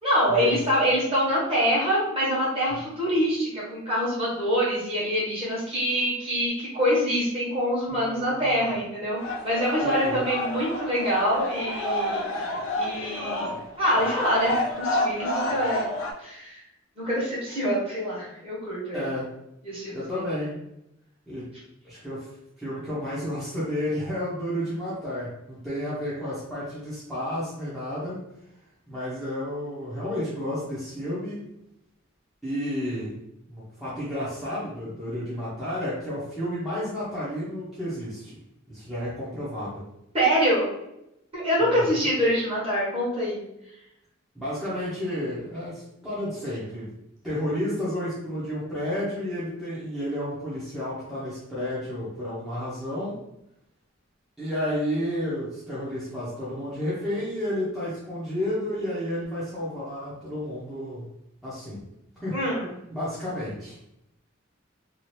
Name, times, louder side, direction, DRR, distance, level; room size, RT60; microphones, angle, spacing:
voice 1, 0.0-12.2 12.8-13.5 13.8-15.8 16.2-16.6 17.0-19.0 19.6-20.2 40.1-40.7 41.3-43.4 62.3-62.7, equal, 30° right, -7 dB, 1.2 m, -25 dB
voice 2, 7.9-8.7 9.8-10.3 18.9-19.3 19.9-20.6 21.3-21.5 21.8-22.3 22.6-28.2 28.9-31.4 32.4-33.1 33.5-38.4 38.7-39.8 41.6-41.8 44.3-46.9 47.2-53.2 54.4-61.0 61.4-61.8 62.2-62.4 62.9-63.8, equal, ahead, -11 dB, 0.7 m, -31 dB
sound 1, 9.2-16.1, left 1 dB, 80° left, 0.5 m, -29 dB
2.8 x 2.4 x 3.1 m, 0.84 s
head